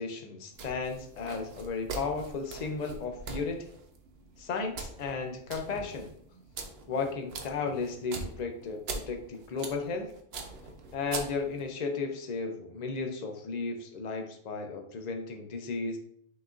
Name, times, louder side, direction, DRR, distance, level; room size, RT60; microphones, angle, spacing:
voice 1, 0.0-3.6 4.4-6.1 6.9-10.1 10.9-16.0, left 4 dB, 45° left, 4 dB, 0.6 m, -34 dB
sound 1, 0.5-11.7, right 4 dB, 60° right, 0.8 m, -43 dB
5.8 x 3.0 x 2.5 m, 0.65 s
omnidirectional pair, 1.3 m